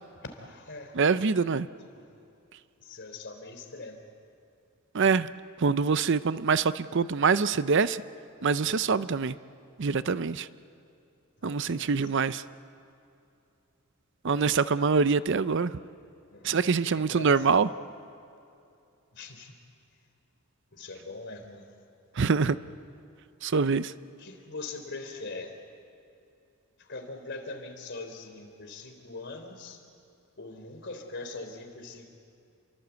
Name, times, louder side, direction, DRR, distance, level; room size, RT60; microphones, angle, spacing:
voice 1, 0.2-1.0 1.9-2.1 2.8-4.0 11.4-12.1 16.3-17.6 19.1-19.6 20.7-21.7 24.2-25.6 26.8-29.8 30.4-32.1, left 3 dB, 55° left, 5 dB, 3.4 m, -42 dB
voice 2, 1.0-1.7 4.9-5.3 5.6-8.0 8.4-9.4 9.8-10.5 11.4-12.4 14.2-15.7 16.4-17.7 22.2-22.6 23.4-23.9, right 5 dB, 55° right, 15 dB, 0.6 m, -24 dB
29.5 x 23.5 x 8.2 m, 2.6 s
head